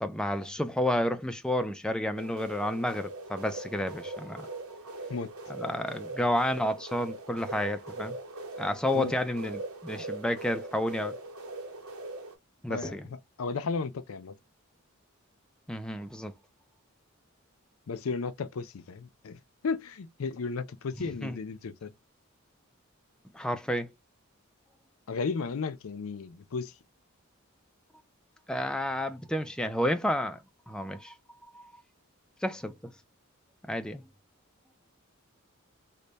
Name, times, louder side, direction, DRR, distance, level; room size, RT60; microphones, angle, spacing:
voice 1, 0.0-4.6 4.9-5.0 5.5-8.2 8.6-11.1 12.6-13.1 15.7-16.3 21.0-21.4 23.3-23.9 28.5-31.2 31.5-31.7 32.4-32.9 33.7-34.0, left 1 dB, 5° left, 0.3 m, -31 dB
sound 1, 2.2-12.3, right 2 dB, 85° right, 0.9 m, -41 dB
voice 2, 12.7-14.3 17.9-21.9 25.1-26.7, left 4 dB, 75° left, 0.5 m, -34 dB
3.3 x 2.1 x 3.9 m
head